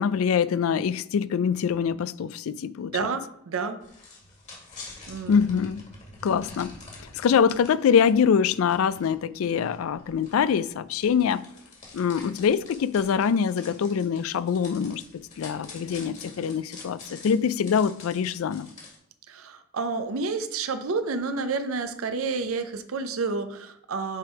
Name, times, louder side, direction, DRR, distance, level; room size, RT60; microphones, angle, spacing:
voice 1, 0.0-3.1 5.3-5.9 6.2-6.7 7.1-11.4 11.9-15.0 15.4-18.7, left 7 dB, 70° left, 0.3 m, -24 dB
voice 2, 2.9-3.8 5.1-5.4 19.3-24.2, right 4 dB, 70° right, 0.6 m, -29 dB
sound 1, 3.8-7.7 8.1-8.2 8.5-19.0, left 3 dB, 35° left, 1.9 m, -47 dB
7.5 x 3.5 x 4.6 m
head